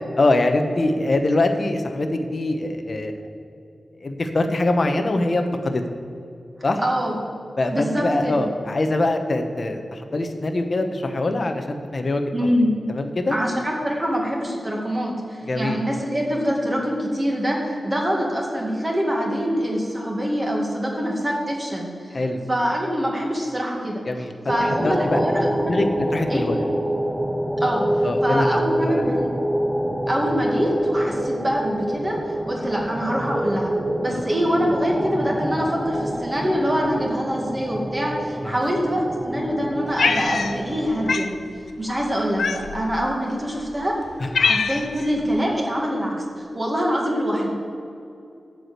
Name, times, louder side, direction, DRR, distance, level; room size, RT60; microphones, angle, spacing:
voice 1, 0.1-3.1 4.0-5.8 6.6-6.8 7.6-12.5 12.9-13.4 15.5-15.8 22.1-22.4 24.1-24.3 24.8-25.2 25.6-26.6 28.0-29.1 38.4-38.6, left 2 dB, 40° left, 5 dB, 1.0 m, -23 dB
voice 2, 6.8-7.2 7.7-8.5 12.3-12.7 13.3-22.2 22.5-25.8 26.3-26.5 27.6-29.3 30.1-33.7 34.0-41.3 41.8-43.9 44.4-47.5, equal, 20° right, -1 dB, 1.9 m, -24 dB
sound 1, 24.5-41.2, equal, 5° right, 0.5 m, -27 dB
Cat, 40.0-40.8 41.1-41.3 42.4-42.9 43.6-43.7 44.0-45.0, left 5 dB, 75° left, 0.5 m, -23 dB
12.5 x 4.9 x 8.2 m, 2.6 s
wide cardioid pair, 150°, 0 cm